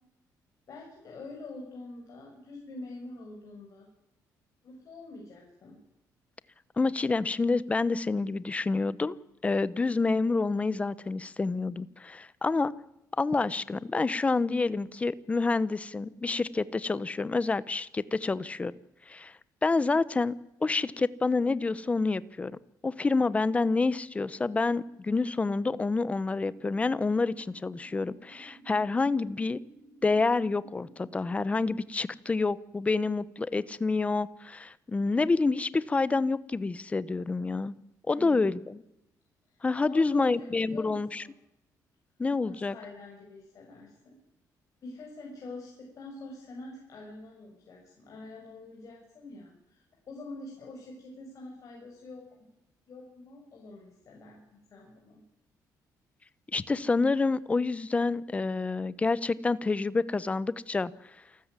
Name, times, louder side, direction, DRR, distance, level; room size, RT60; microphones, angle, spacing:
voice 1, 0.7-3.9 4.6-5.8 38.1-38.5 39.5-41.3 42.4-44.2 44.8-52.5 52.9-54.4 54.7-55.2, left 2 dB, 50° left, -2 dB, 7.0 m, -45 dB
voice 2, 6.8-9.2 9.4-12.7 13.2-18.7 19.1-19.3 19.6-20.4 20.6-22.5 22.8-29.6 30.0-37.7 38.1-38.8 39.6-41.2 42.2-42.7 56.5-60.9, left 3 dB, 20° left, 18 dB, 0.9 m, -28 dB
sound 1, 26.4-31.4, right 3 dB, 90° right, 5.4 m, -56 dB
28.0 x 13.5 x 9.8 m, 0.89 s
cardioid pair, 140°, 7 cm